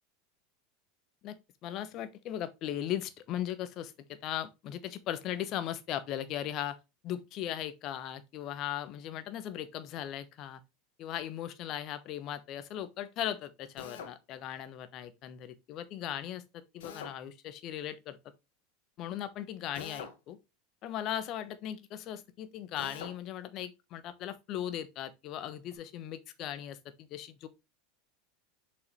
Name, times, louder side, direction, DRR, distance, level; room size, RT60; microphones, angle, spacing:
voice 1, 1.6-6.8 7.0-10.6 11.0-18.2 19.0-20.4 20.8-27.5, left 11 dB, 50° left, 1.2 m, -38 dB
Drill, 13.8-14.2 16.8-17.2 19.7-20.2 22.8-23.2, left 6 dB, 75° left, 1.6 m, -44 dB
6.7 x 5.4 x 3.2 m
hypercardioid pair, 90°, 0 cm